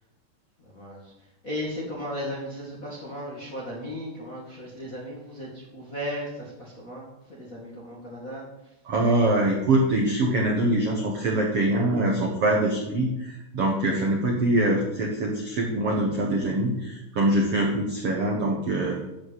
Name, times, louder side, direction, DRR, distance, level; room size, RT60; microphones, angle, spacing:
voice 1, 0.6-1.1 1.4-8.7, equal, 35° left, -3 dB, 1.5 m, -36 dB
voice 2, 8.9-19.0, right 1 dB, 65° right, 0 dB, 1.4 m, -24 dB
13.5 x 5.7 x 7.8 m, 0.94 s
omnidirectional pair, 5.0 m